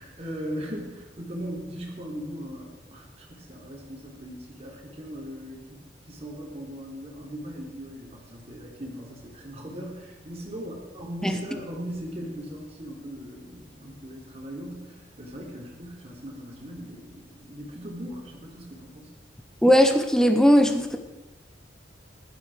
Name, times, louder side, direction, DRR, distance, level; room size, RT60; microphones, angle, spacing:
voice 1, 0.0-5.8 6.1-19.1, equal, 35° right, -2 dB, 3.3 m, -39 dB
voice 2, 19.6-21.0, equal, 5° left, 6 dB, 0.8 m, -18 dB
15.0 x 12.0 x 4.9 m, 1.1 s
head